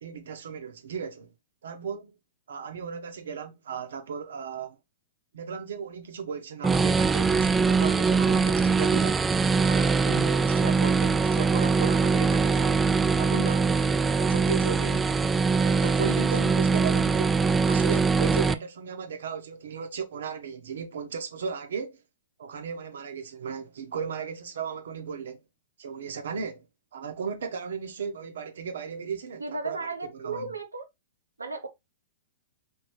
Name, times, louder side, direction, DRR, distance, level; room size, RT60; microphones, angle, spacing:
voice 1, 0.0-1.3 1.6-2.1 2.5-4.8 5.3-9.2 9.6-12.8 13.2-13.7 14.2-15.2 15.6-17.4 17.6-22.0 22.4-25.4 25.8-26.6 26.9-30.6, right 6 dB, 70° right, 1.0 m, -35 dB
sound 1, 6.6-18.5, right 4 dB, 10° right, 0.4 m, -23 dB
voice 2, 29.4-30.8 31.4-31.7, right 3 dB, 90° right, 0.9 m, -34 dB
4.7 x 3.0 x 3.1 m
figure-of-eight pair, 110°, 0 cm